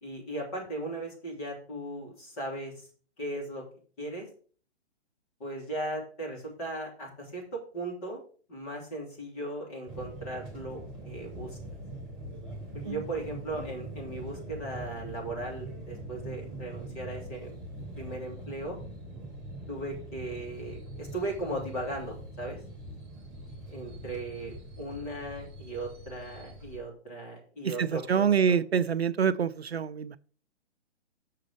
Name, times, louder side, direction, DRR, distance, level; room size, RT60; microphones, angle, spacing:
voice 1, 0.0-2.9 3.2-3.6 4.0-4.3 5.4-8.2 8.5-11.6 12.7-17.5 17.9-18.8 19.7-22.6 23.7-28.6, right 1 dB, 30° left, 0 dB, 3.3 m, -37 dB
sound 1, 9.9-26.8, right 1 dB, 15° right, 2.6 m, -43 dB
voice 2, 27.6-30.2, right 7 dB, 65° right, 15 dB, 0.5 m, -26 dB
6.5 x 4.9 x 6.6 m, 0.43 s
figure-of-eight pair, 130°, 35 cm